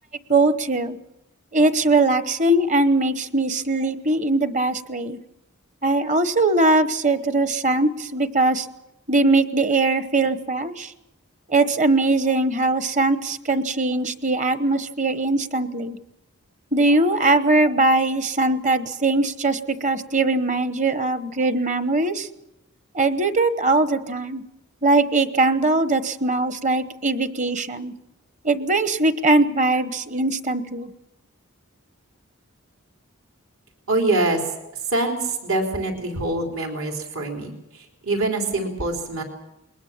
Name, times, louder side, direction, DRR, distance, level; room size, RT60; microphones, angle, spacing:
voice 1, 0.3-1.0 1.5-5.2 5.8-8.7 9.1-10.9 11.5-16.0 16.7-22.3 22.9-24.4 24.8-27.9 28.4-30.9, right 2 dB, 35° right, 12 dB, 1.0 m, -21 dB
voice 2, 33.9-34.4 34.9-39.2, right 2 dB, 75° right, 3 dB, 3.7 m, -24 dB
22.0 x 19.5 x 7.3 m, 0.90 s
head